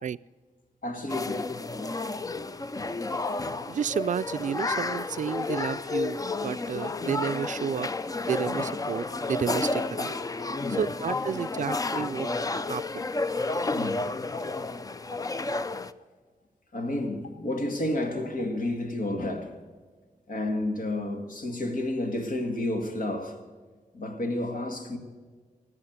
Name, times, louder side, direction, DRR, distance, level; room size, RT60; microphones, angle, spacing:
voice 1, 0.8-1.5 10.6-10.9 11.4-11.5 11.9-12.1 13.7-14.1 14.4-14.5 16.7-19.6 20.3-23.4 23.9-25.0, left 1 dB, 75° left, 2.1 m, -31 dB
sound 1, 1.1-15.9, left 3 dB, 25° left, 0.5 m, -31 dB
voice 2, 3.7-7.9 8.2-10.1 10.8-12.3 12.5-13.1, right 8 dB, 65° right, 0.4 m, -31 dB
18.0 x 7.6 x 8.0 m
wide cardioid pair, 120°, 14 cm